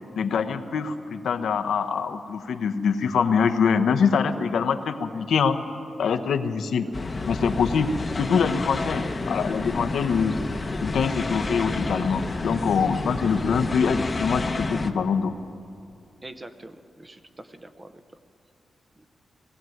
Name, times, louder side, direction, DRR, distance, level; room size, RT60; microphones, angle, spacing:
voice 1, 0.2-5.6 6.0-6.9 7.3-10.3 10.8-15.3, left 6 dB, 75° left, 8 dB, 1.1 m, -24 dB
sound 1, 6.9-14.9, left 3 dB, 25° left, 1.0 m, -30 dB
voice 2, 16.2-18.0 19.0-19.1, right 2 dB, 20° right, 10 dB, 0.8 m, -44 dB
19.5 x 16.0 x 9.3 m, 2.6 s
wide cardioid pair, 155°, 0 cm